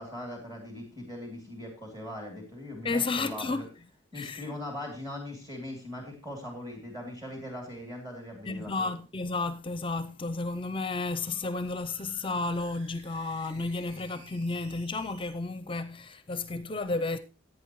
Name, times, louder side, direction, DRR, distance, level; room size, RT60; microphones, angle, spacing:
voice 1, 0.0-3.7 4.1-8.9, left 1 dB, 20° right, 2.9 m, -40 dB
voice 2, 2.8-3.7 4.1-4.5 8.5-17.2, left 3 dB, 25° left, 0.6 m, -32 dB
sound 1, 9.9-15.3, right 1 dB, 40° right, 3.5 m, -55 dB
17.0 x 8.8 x 3.1 m
head